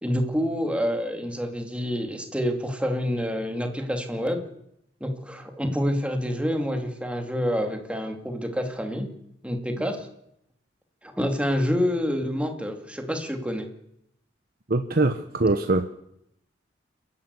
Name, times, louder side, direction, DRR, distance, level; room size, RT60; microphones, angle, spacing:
voice 1, 0.0-4.4 5.0-9.2 9.4-10.1 11.0-13.7, equal, 5° right, 5 dB, 2.6 m, -27 dB
voice 2, 14.7-16.0, right 2 dB, 55° right, 8 dB, 1.0 m, -23 dB
28.5 x 11.5 x 8.2 m, 0.77 s
head